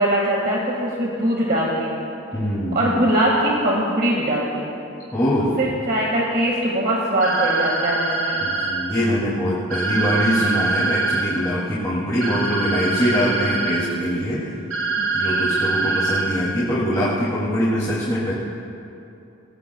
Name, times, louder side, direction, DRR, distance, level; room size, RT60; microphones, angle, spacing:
voice 1, 0.0-2.0 2.7-4.7 5.6-8.4 10.4-10.5 12.1-12.4 15.0-16.1, right 1 dB, 45° right, -4 dB, 1.9 m, -22 dB
voice 2, 2.3-3.1 5.1-5.6 8.4-14.4 15.1-18.3, equal, 20° left, -9 dB, 2.5 m, -23 dB
sound 1, 7.2-8.7 9.7-11.2 12.2-13.7 14.7-16.2, right 3 dB, 75° right, 4.3 m, -23 dB
25.5 x 18.5 x 2.3 m, 2.7 s
head